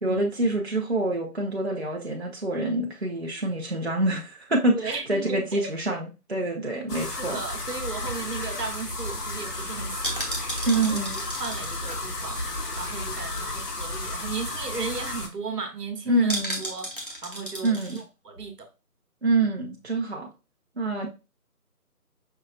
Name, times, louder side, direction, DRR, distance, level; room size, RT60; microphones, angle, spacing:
voice 1, 0.0-7.4 10.7-11.2 16.1-16.6 17.6-18.0 19.2-20.3 20.8-21.1, right 2 dB, 45° right, -1 dB, 0.7 m, -26 dB
voice 2, 4.7-5.7 7.2-10.9 11.2-16.3 16.6-16.9 17.2-18.7, right 4 dB, 85° right, 5 dB, 1.1 m, -36 dB
sound 1, 6.9-15.3, left 2 dB, 80° left, 1.2 m, -33 dB
sound 2, 7.9-13.2 13.5-13.6 13.9-14.1 14.5-14.6 14.9-15.2 16.3-18.0 18.4-18.5, right 1 dB, 35° left, 0.7 m, -36 dB
5.5 x 2.5 x 2.4 m, 0.28 s
figure-of-eight pair, 180°, 46 cm